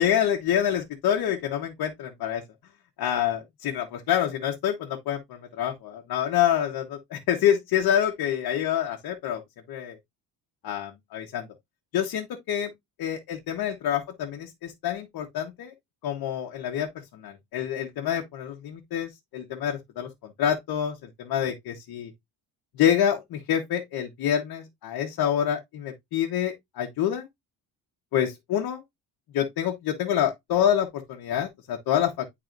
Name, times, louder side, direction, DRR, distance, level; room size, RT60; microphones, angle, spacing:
voice 1, 0.0-2.4 3.0-9.4 9.7-10.0 10.6-11.5 11.9-12.7 13.0-15.7 16.0-16.9 17.1-22.1 22.8-27.3 28.1-28.8 29.3-32.3, left 10 dB, 60° left, 1.2 m, -27 dB
10.5 x 4.0 x 2.6 m
cardioid pair, 165°, 41 cm